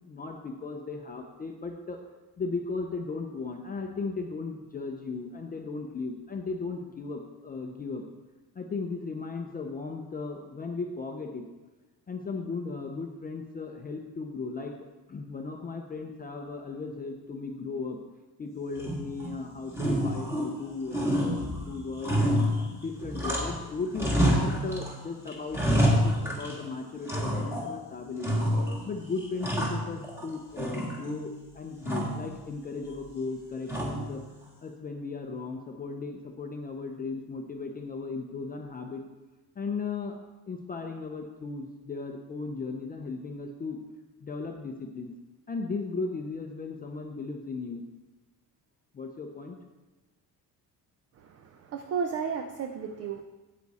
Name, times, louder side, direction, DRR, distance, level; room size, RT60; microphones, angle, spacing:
voice 1, 0.1-2.0 2.4-8.0 8.5-11.5 12.1-14.7 15.1-18.0 18.4-22.4 22.8-28.4 28.9-34.2 34.6-39.0 39.6-40.2 40.5-43.8 44.2-45.1 45.5-47.8 48.9-49.6, left 4 dB, 25° left, 3 dB, 0.5 m, -36 dB
sound 1, 18.8-19.3 19.7-20.6 20.9-23.7 23.9-24.9 25.3-26.6 27.1-27.7 28.2-28.9 29.2-30.3 30.6-31.3 31.8-32.3 33.7-34.2, equal, 5° right, 1.6 m, -28 dB
voice 2, 51.2-53.2, right 6 dB, 40° right, 6 dB, 0.5 m, -33 dB
9.4 x 8.4 x 4.1 m, 1.1 s
cardioid pair, 165°, 38 cm